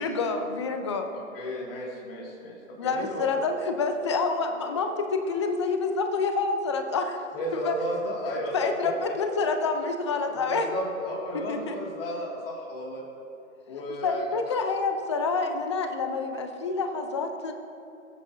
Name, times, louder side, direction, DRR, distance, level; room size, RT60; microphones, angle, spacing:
voice 1, 0.0-1.1 2.8-7.2 7.6-7.7 8.5-10.7 11.5-11.8 13.7-17.5, left 4 dB, 20° left, 6 dB, 0.5 m, -28 dB
voice 2, 1.1-3.4 7.3-8.6 8.8-9.2 10.2-13.1 13.7-14.6, equal, 40° left, -3 dB, 2.2 m, -34 dB
20.0 x 8.4 x 2.7 m, 2.6 s
hypercardioid pair, 145°, 42 cm